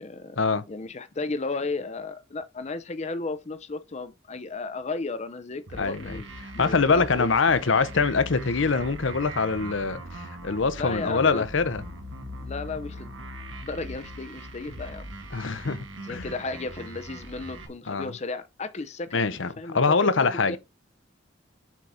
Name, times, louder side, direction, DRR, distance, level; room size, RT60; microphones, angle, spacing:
voice 1, 0.0-0.4 0.7-6.2 6.5-7.3 10.8-11.5 12.4-13.1 13.6-15.1 16.0-20.6, left 3 dB, 35° left, 0.6 m, -34 dB
sound 1, 5.7-17.7, right 1 dB, 85° right, 1.7 m, -40 dB
voice 2, 5.8-6.2 6.6-11.8 15.3-16.3 17.9-18.1 19.1-19.5 19.7-20.6, left 4 dB, 80° left, 0.8 m, -24 dB
7.4 x 4.0 x 4.8 m
head